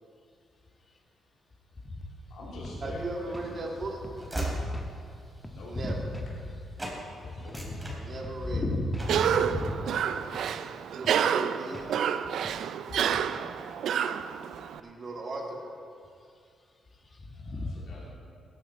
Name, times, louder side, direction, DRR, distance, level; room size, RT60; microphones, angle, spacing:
voice 1, 2.3-3.7 4.0-4.1 5.5-5.7 7.3-7.6 9.4-10.6 11.1-11.9 12.9-15.1 17.3-18.2, left 1 dB, 75° left, -6 dB, 3.1 m, -47 dB
sound 1, 2.6-2.8 3.3-3.5 4.0-4.2 4.7-4.9 5.4-5.6 6.1-6.3 6.8-7.0 7.5-7.7 8.2-8.4 8.9-9.1 9.6-9.8 10.3-10.5 11.0-11.2 11.7-11.9 12.4-12.6 13.1-13.3, left 1 dB, 10° left, 1.3 m, -45 dB
voice 2, 2.8-4.0 5.7-6.1 7.9-8.6 10.9-11.8 14.8-15.6, right 2 dB, 45° right, 0 dB, 2.2 m, -37 dB
Train / Slam, 2.9-6.5 6.8-7.0 7.4-8.6 9.0-9.3, right 1 dB, 15° right, 3.3 m, -38 dB
voice 3, 4.5-4.9 5.8-5.9 7.2-7.4 8.5-9.6 17.4-17.7, left 2 dB, 35° left, 2 dB, 1.7 m, -32 dB
Cough, 9.0-14.8, right 8 dB, 75° right, 0.4 m, -29 dB
16.5 x 9.8 x 4.3 m, 2.4 s
cardioid pair, 85°, 0 cm